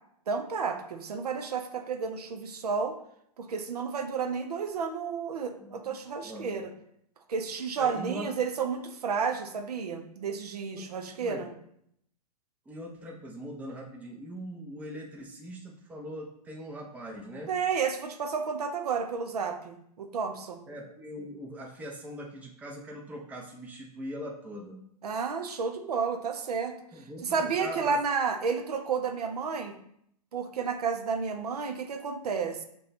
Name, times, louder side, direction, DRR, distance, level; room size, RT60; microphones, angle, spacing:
voice 1, 0.3-3.0 3.4-6.7 7.3-11.5 17.5-20.6 25.0-26.8 27.2-29.8 30.3-32.6, right 5 dB, 75° right, 6 dB, 0.5 m, -31 dB
voice 2, 5.6-6.6 7.8-8.3 10.7-10.9 11.2-11.4 12.7-17.5 20.7-24.8 26.9-27.9, equal, 10° right, -1 dB, 0.5 m, -41 dB
2.9 x 2.2 x 4.0 m, 0.71 s
hypercardioid pair, 115°, 20 cm